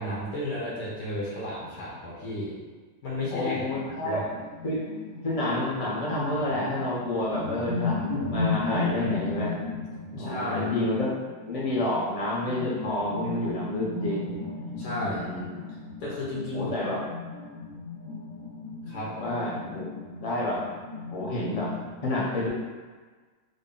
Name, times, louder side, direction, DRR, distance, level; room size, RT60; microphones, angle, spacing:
voice 1, 0.0-2.6 3.0-4.2 9.8-9.9 10.2-10.7 14.8-15.3 16.0-16.8 18.9-19.3, left 1 dB, 85° left, -5 dB, 1.3 m, -33 dB
sound 1, 3.2-21.9, left 3 dB, 70° left, 1.1 m, -35 dB
voice 2, 3.3-4.3 4.6-4.8 5.2-9.5 10.1-14.4 15.0-15.5 16.5-17.0 18.8-19.9 20.2-20.6 21.1-21.7 22.0-22.5, left 1 dB, 55° left, -5 dB, 0.4 m, -29 dB
3.8 x 2.1 x 3.7 m, 1.4 s
omnidirectional pair, 1.7 m